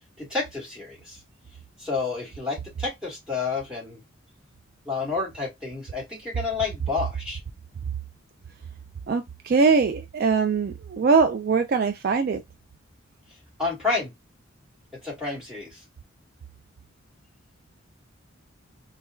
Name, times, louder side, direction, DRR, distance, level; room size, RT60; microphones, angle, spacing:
voice 1, 0.2-1.2 1.8-4.0 4.8-7.4 13.6-14.1 15.0-15.8, left 4 dB, 5° right, 1.6 m, -30 dB
voice 2, 9.1-12.4, right 5 dB, 45° right, 0.3 m, -22 dB
4.2 x 2.3 x 2.2 m
head